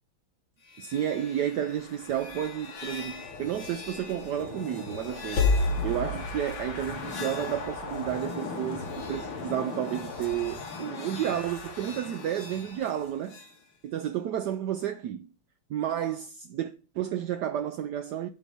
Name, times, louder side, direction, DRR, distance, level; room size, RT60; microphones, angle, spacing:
sound 1, 0.7-13.5, left 3 dB, 60° left, 2.5 m, -34 dB
voice 1, 0.8-5.5 5.8-13.4 13.8-15.3 15.7-18.3, right 10 dB, 85° right, 0.9 m, -31 dB
11.0 x 3.8 x 6.8 m
omnidirectional pair, 2.4 m